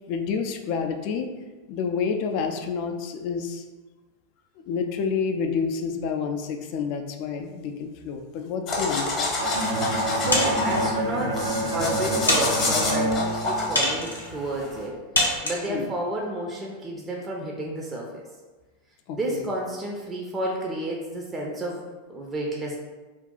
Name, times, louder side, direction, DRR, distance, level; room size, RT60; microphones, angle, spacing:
voice 1, 0.1-1.3 1.7-3.6 4.7-9.3 15.7-15.9 19.1-19.4, left 6 dB, 50° left, 5 dB, 0.4 m, -29 dB
sound 1, 8.7-14.9, left 2 dB, 30° left, 0.9 m, -28 dB
Bowed string instrument, 9.4-14.3, right 1 dB, 85° right, 0.5 m, -28 dB
voice 2, 10.1-18.2 19.1-21.8 22.1-22.8, right 1 dB, 20° right, -1 dB, 0.5 m, -31 dB
sound 2, 10.3-10.9 11.6-11.7 12.3-12.9 13.8-14.3 15.2-15.7, left 1 dB, 90° left, 0.6 m, -25 dB
2.6 x 2.3 x 3.7 m, 1.3 s
figure-of-eight pair, 90°, 0 cm